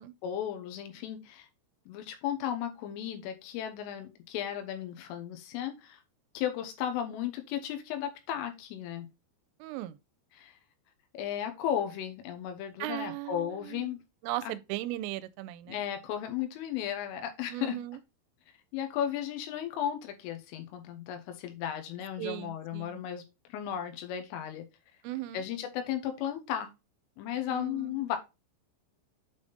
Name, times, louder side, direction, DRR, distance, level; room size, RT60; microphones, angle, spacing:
voice 1, 0.2-1.5 1.9-6.0 6.4-9.1 10.4-10.6 11.1-14.0 15.7-17.8 18.7-23.2 23.5-24.7 25.3-26.7 27.2-28.2, left 10 dB, 85° left, 3.5 m, -35 dB
voice 2, 9.6-10.0 12.8-15.8 17.5-18.0 22.2-23.0 25.0-25.4 27.5-28.2, right 16 dB, 85° right, 3.1 m, -38 dB
8.2 x 3.5 x 3.9 m
omnidirectional pair, 5.7 m